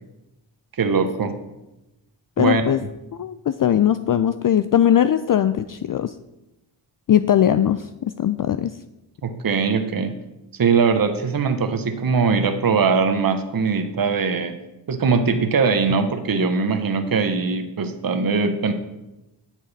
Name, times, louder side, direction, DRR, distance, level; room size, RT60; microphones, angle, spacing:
voice 1, 0.7-1.4 2.4-2.7 9.2-10.1 10.6-14.5 14.9-18.7, right 5 dB, 45° right, 8 dB, 1.0 m, -21 dB
voice 2, 2.4-2.8 3.1-6.1 7.1-8.8, left 10 dB, 45° left, 11 dB, 0.4 m, -20 dB
9.9 x 6.4 x 4.1 m, 0.96 s
cardioid pair, 50°, 49 cm